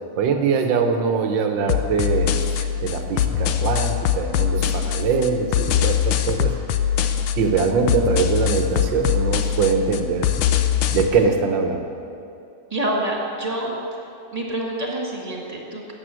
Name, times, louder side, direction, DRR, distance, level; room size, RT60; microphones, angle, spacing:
voice 1, 0.2-6.5 7.4-10.3 10.9-11.9, right 5 dB, 75° right, 5 dB, 1.7 m, -22 dB
sound 1, 1.7-11.1, left 10 dB, 90° left, 1.5 m, -22 dB
voice 2, 12.7-13.8 14.3-15.9, right 1 dB, 20° right, -1 dB, 2.1 m, -27 dB
13.0 x 8.6 x 7.7 m, 2.8 s
omnidirectional pair, 2.1 m